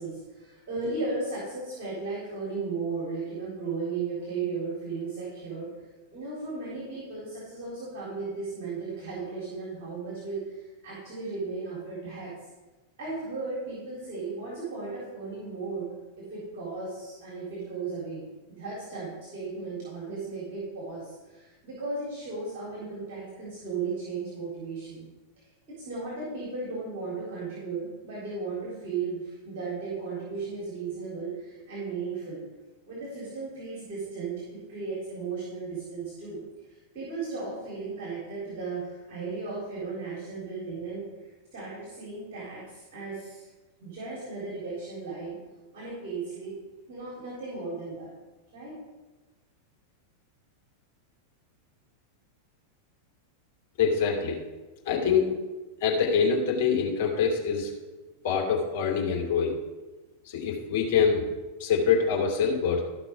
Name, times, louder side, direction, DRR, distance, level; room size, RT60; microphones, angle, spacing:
voice 1, 0.0-5.7 6.1-12.3 13.0-18.3 18.6-25.0 25.7-32.4 32.8-36.4 36.7-43.5 43.8-45.4 45.7-46.5 46.9-48.1 48.5-48.8, right 4 dB, 50° right, -6 dB, 4.0 m, -35 dB
voice 2, 53.8-54.4 54.8-55.3 55.8-57.7 58.2-59.6 60.3-61.2 61.6-62.8, left 6 dB, 50° left, 0 dB, 2.9 m, -25 dB
14.0 x 6.0 x 4.6 m, 1.2 s
figure-of-eight pair, 90°, 0 cm